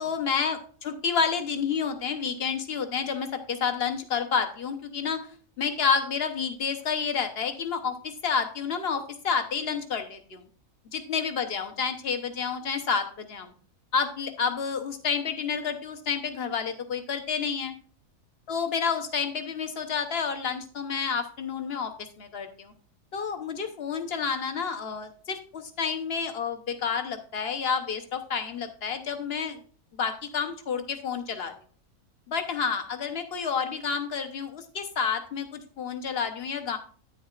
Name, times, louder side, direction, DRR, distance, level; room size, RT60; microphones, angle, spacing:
voice 1, 0.0-10.4 10.9-13.5 13.9-17.7 18.5-21.9 22.2-22.7 23.1-29.6 29.9-31.5 32.3-36.8, left 6 dB, 50° left, 7 dB, 1.1 m, -29 dB
9.5 x 9.1 x 2.4 m, 0.43 s
omnidirectional pair, 1.5 m